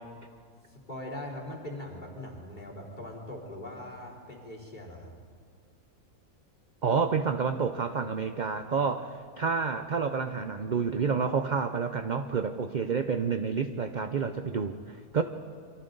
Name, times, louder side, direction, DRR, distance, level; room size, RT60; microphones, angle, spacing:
voice 1, 0.7-5.1 14.5-14.7, left 1 dB, 30° left, -2 dB, 3.8 m, -41 dB
voice 2, 6.8-15.2, right 5 dB, 45° right, 8 dB, 0.6 m, -29 dB
28.0 x 24.0 x 4.0 m, 2.1 s
omnidirectional pair, 1.5 m